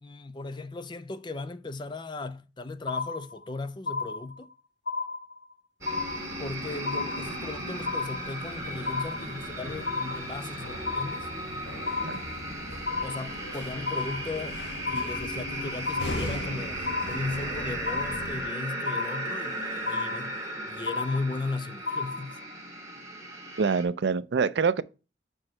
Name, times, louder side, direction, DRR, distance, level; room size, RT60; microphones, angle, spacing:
voice 1, 0.0-4.5 6.4-11.3 13.0-14.6 14.9-22.4, left 3 dB, 25° left, 0.5 m, -36 dB
sound 1, 2.9-3.5 3.9-4.5 4.9-5.5 5.9-6.5 6.9-7.5 7.9-8.5 8.9-9.5 9.9-10.5 10.9-11.5 11.9-12.5 12.9-13.5 13.9-14.5 14.9-15.5 15.9-16.5 16.9-17.5 17.9-18.5 18.9-19.5 19.9-20.5 20.9-21.5 21.9-22.5, left 4 dB, 60° left, 0.9 m, -33 dB
sound 2, 5.8-18.4, left 1 dB, 75° left, 1.3 m, -40 dB
sound 3, 5.8-23.8, right 1 dB, 20° right, 1.9 m, -36 dB
voice 2, 23.6-24.8, right 5 dB, 70° right, 0.4 m, -25 dB
6.3 x 4.5 x 4.3 m
head